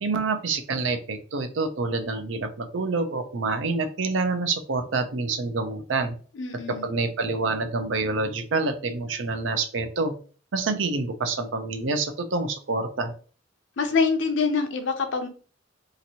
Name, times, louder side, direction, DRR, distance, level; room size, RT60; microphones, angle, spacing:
voice 1, 0.0-6.1 6.8-10.1 10.5-13.1, right 3 dB, 85° right, 7 dB, 0.5 m, -27 dB
voice 2, 6.4-6.9 13.8-15.3, left 4 dB, 75° left, 5 dB, 0.6 m, -25 dB
2.9 x 2.6 x 2.8 m, 0.40 s
head